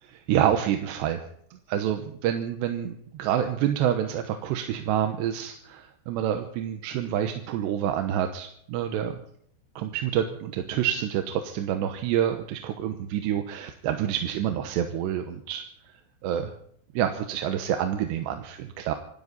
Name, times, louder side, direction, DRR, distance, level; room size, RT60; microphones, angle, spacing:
voice 1, 0.0-1.2 1.5-9.2 9.8-15.6 16.2-16.5 16.9-18.9, right 10 dB, 80° right, 6 dB, 3.1 m, -27 dB
26.0 x 12.5 x 4.1 m, 0.68 s
omnidirectional pair, 5.1 m